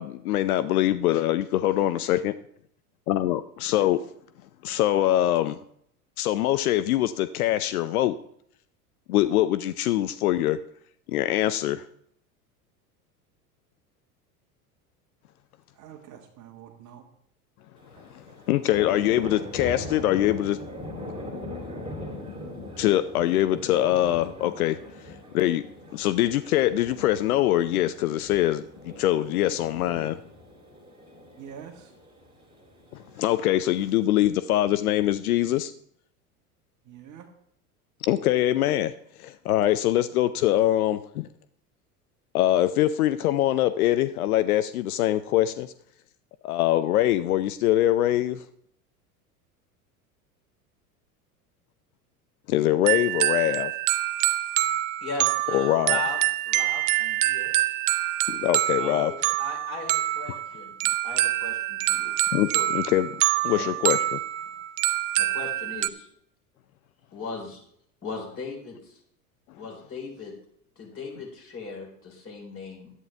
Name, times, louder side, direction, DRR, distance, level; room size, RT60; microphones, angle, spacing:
voice 1, 0.0-2.3 3.1-4.0 4.6-5.6 6.2-8.2 9.1-10.6 11.1-11.8 18.1-20.6 22.8-24.8 25.0-25.6 25.9-30.2 32.9-35.7 38.0-38.9 39.2-41.3 42.3-45.7 46.4-48.4 52.5-53.7 55.5-56.0 58.3-59.1 60.3-60.4 62.3-63.1 63.4-64.2, left 13 dB, 75° left, 13 dB, 0.6 m, -23 dB
voice 2, 15.7-17.1 31.4-31.9 36.8-37.3, right 8 dB, 40° right, 4 dB, 1.6 m, -45 dB
sound 1, 17.8-34.1, left 1 dB, 10° right, 2.5 m, -40 dB
sound 2, 52.9-65.9, right 16 dB, 55° right, 0.6 m, -26 dB
voice 3, 55.0-56.2 56.5-57.5 58.8-60.7 61.0-62.1 62.5-62.7 63.5-63.7 65.3-66.1 67.1-67.6 68.0-68.9 69.5-70.3 70.8-72.9, left 4 dB, 30° left, -1 dB, 4.2 m, -38 dB
11.0 x 8.9 x 3.4 m, 0.67 s
hypercardioid pair, 85°, 45 cm